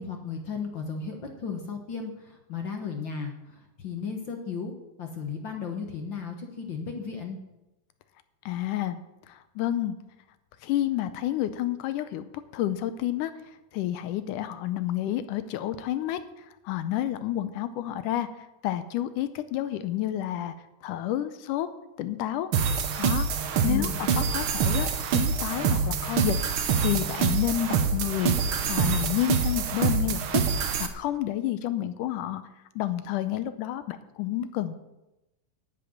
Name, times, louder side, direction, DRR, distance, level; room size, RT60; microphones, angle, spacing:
voice 1, 0.0-4.7 5.0-7.4 23.7-24.0, left 5 dB, 55° left, 4 dB, 1.5 m, -35 dB
voice 2, 8.5-9.0 9.3-10.0 10.6-12.3 12.5-13.3 13.7-16.2 16.7-18.3 18.6-20.5 20.8-21.7 22.0-22.5 23.0-23.3 23.6-28.3 28.7-30.4 30.8-32.4 32.8-34.8, left 12 dB, 85° left, 12 dB, 2.2 m, -29 dB
sound 1, 22.5-30.9, right 6 dB, 70° right, 1.2 m, -26 dB
10.0 x 7.7 x 9.4 m, 0.96 s
omnidirectional pair, 3.7 m